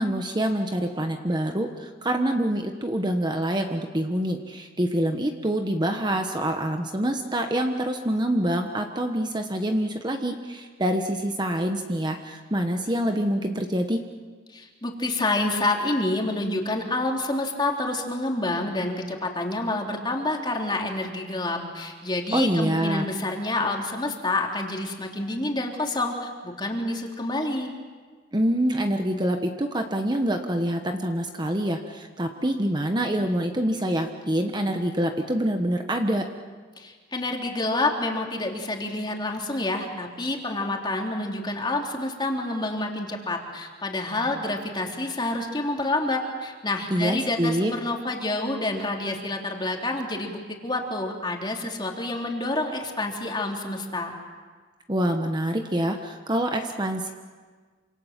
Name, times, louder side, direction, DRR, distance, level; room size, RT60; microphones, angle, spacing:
voice 1, 0.0-14.0 22.3-23.1 28.3-36.2 46.9-47.7 54.9-57.1, right 1 dB, 25° right, 5 dB, 1.2 m, -26 dB
voice 2, 14.5-27.7 36.8-54.1, left 2 dB, 25° left, 1 dB, 3.3 m, -28 dB
28.0 x 26.5 x 7.4 m, 1.5 s
head